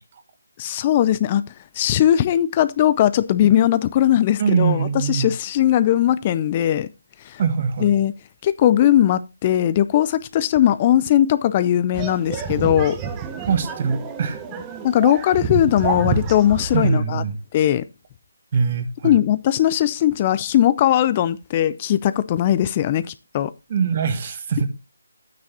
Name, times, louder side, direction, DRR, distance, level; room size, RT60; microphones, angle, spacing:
voice 1, 0.6-1.4 1.7-6.9 7.2-7.4 7.8-8.1 8.4-13.0 14.8-17.2 17.5-17.8 19.0-23.5, left 11 dB, 30° left, 0.4 m, -19 dB
voice 2, 4.4-5.3 7.4-7.9 13.5-14.4 16.7-17.4 18.5-19.1 23.7-24.7, right 6 dB, 40° right, 1.4 m, -22 dB
sound 1, 11.9-16.9, right 6 dB, 15° right, 1.0 m, -28 dB
9.6 x 9.3 x 2.8 m
figure-of-eight pair, 150°, 0 cm